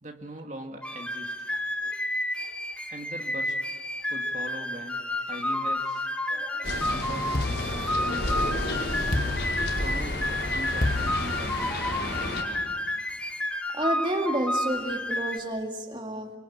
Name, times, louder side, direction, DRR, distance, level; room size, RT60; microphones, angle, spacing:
voice 1, 0.0-1.5 2.9-3.6 4.1-6.1 6.7-8.7 9.2-11.9, right 1 dB, 40° right, 3 dB, 2.0 m, -41 dB
sound 1, 0.8-15.4, left 1 dB, 5° left, 1.2 m, -31 dB
voice 2, 6.3-6.8 12.4-12.5 13.7-16.3, right 1 dB, 25° right, 3 dB, 2.2 m, -31 dB
sound 2, 6.6-12.4, left 1 dB, 80° left, 5.3 m, -31 dB
sound 3, 7.3-8.5 9.1-10.2 10.8-11.9, left 2 dB, 50° left, 1.6 m, -31 dB
27.5 x 24.0 x 8.8 m, 1.5 s
head